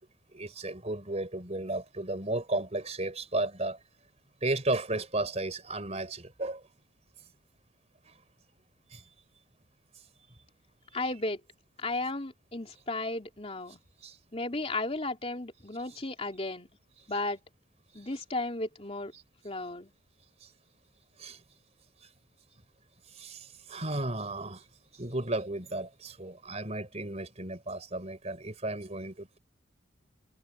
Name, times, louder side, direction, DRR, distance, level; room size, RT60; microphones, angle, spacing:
voice 1, 0.3-3.8 4.4-6.6 8.1-8.2 8.9-9.0 14.0-14.2 21.2-21.4 23.1-24.7 24.9-29.4, right 2 dB, 30° right, 4.0 m, -34 dB
voice 2, 10.9-11.4 11.8-13.8 14.3-16.7 17.1-17.4 17.9-19.1 19.4-19.9, left 2 dB, 30° left, 3.1 m, -34 dB
head